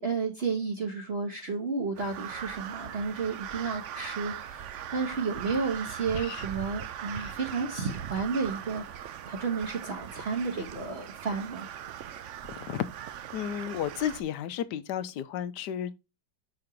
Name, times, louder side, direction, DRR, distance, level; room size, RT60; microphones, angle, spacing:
voice 1, 0.0-11.7, right 4 dB, 40° right, 1.2 m, -32 dB
Crow, 1.9-14.2, right 10 dB, 75° right, 0.6 m, -40 dB
voice 2, 12.5-12.8 13.3-15.9, left 10 dB, 75° left, 1.2 m, -33 dB
6.1 x 4.8 x 5.0 m
omnidirectional pair, 2.0 m